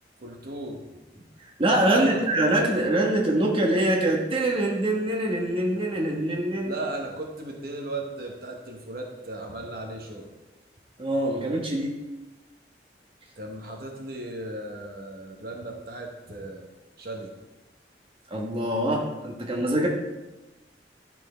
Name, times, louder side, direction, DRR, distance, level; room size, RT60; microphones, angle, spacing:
voice 1, 0.2-0.8 1.8-2.2 6.6-10.3 13.4-16.7 17.0-17.4, right 2 dB, 55° right, 2 dB, 1.3 m, -36 dB
voice 2, 1.6-6.7 11.0-11.9 18.3-19.9, right 1 dB, 30° right, -1 dB, 1.3 m, -24 dB
11.5 x 6.1 x 4.4 m, 1.1 s
head